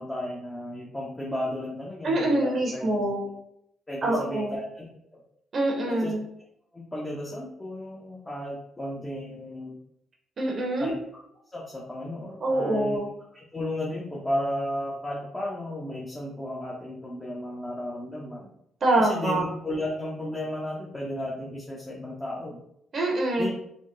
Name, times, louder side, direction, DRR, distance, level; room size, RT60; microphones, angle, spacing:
voice 1, 0.0-3.0 3.9-4.8 5.1-5.2 5.9-6.1 6.7-9.8 10.8-10.9 11.5-18.5 19.0-22.6 23.4-23.5, left 1 dB, 20° left, -4 dB, 0.7 m, -34 dB
voice 2, 2.0-3.2 4.0-4.6 5.5-6.2 10.4-10.9 12.4-13.1 18.8-19.5 22.9-23.5, right 1 dB, 50° right, 0 dB, 0.7 m, -25 dB
3.4 x 2.1 x 2.5 m, 0.74 s
hypercardioid pair, 50°, 0 cm